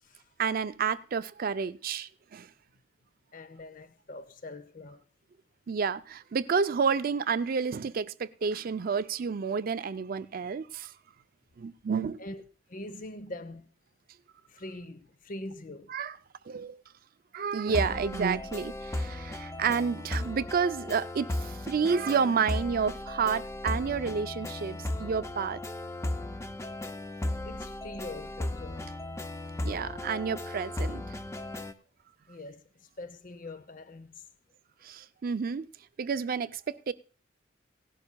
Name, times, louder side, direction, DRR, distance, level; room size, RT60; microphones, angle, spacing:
voice 1, 0.4-2.5 5.7-10.9 11.6-12.2 15.9-16.2 16.5-16.8 17.3-25.6 29.6-31.0 34.8-35.7 36.0-36.9, right 6 dB, 50° right, 0.4 m, -30 dB
voice 2, 3.3-5.0 12.2-12.4 12.7-13.7 14.5-16.0 27.4-28.9 32.3-34.2, left 2 dB, 45° left, 0.7 m, -43 dB
sound 1, 17.7-31.7, left 1 dB, 15° left, 0.5 m, -36 dB
17.5 x 11.5 x 2.2 m
head